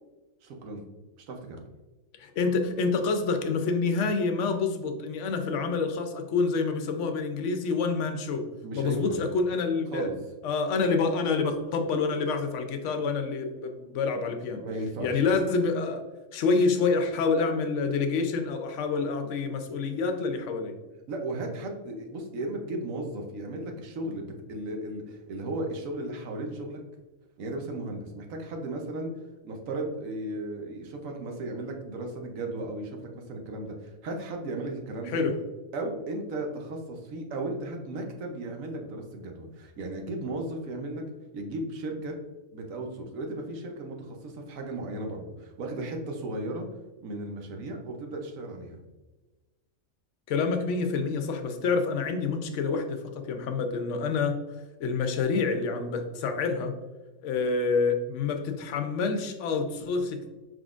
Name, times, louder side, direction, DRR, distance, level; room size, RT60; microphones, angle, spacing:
voice 1, 0.4-0.8 1.2-1.6 8.6-9.2 9.9-10.1 14.6-15.2 21.1-26.8 27.4-29.1 29.4-35.2 35.7-41.0 41.3-42.2 42.5-46.7 47.0-48.8, right 2 dB, 80° right, 3 dB, 1.2 m, -35 dB
voice 2, 2.2-8.5 8.7-10.1 10.4-14.6 15.0-16.0 16.3-20.7 35.1-35.3 50.3-54.4 54.8-56.7 57.2-60.3, left 4 dB, 70° left, 6 dB, 0.9 m, -27 dB
4.9 x 3.7 x 2.4 m, 1.2 s
omnidirectional pair, 1.4 m